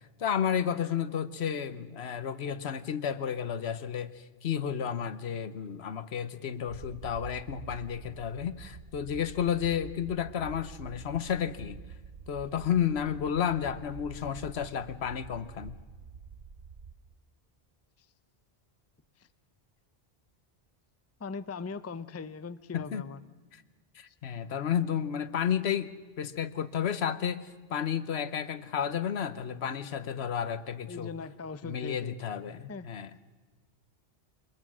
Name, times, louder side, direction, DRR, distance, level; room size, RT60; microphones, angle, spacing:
voice 1, 0.2-11.8 12.3-15.8 22.7-23.0 23.5-23.6 23.9-31.1 31.6-33.2, left 8 dB, 80° left, 14 dB, 1.1 m, -32 dB
sound 1, 6.7-16.9, right 6 dB, 65° right, 1.2 m, -47 dB
voice 2, 21.2-23.2 30.9-32.2 32.7-32.9, left 4 dB, 20° left, 14 dB, 0.5 m, -40 dB
23.5 x 21.0 x 6.2 m, 1.4 s
omnidirectional pair, 1.1 m